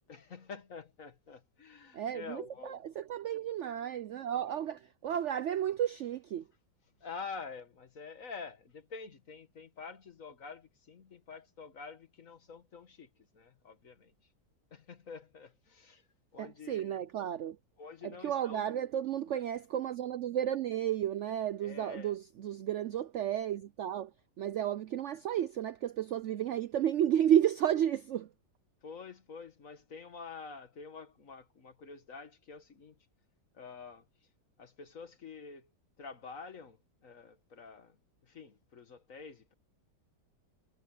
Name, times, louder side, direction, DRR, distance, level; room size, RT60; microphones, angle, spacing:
voice 1, 0.1-2.8 7.0-14.1 14.7-16.0 16.3-17.0 17.8-18.8 21.6-22.1 28.8-33.0 33.5-34.0 34.6-35.7 36.0-38.0 38.2-39.5, left 5 dB, 50° left, 2.0 m, -47 dB
voice 2, 1.9-6.5 16.4-17.6 18.0-24.1 24.4-28.3, right 10 dB, 85° right, 0.6 m, -32 dB
omnidirectional pair, 1.9 m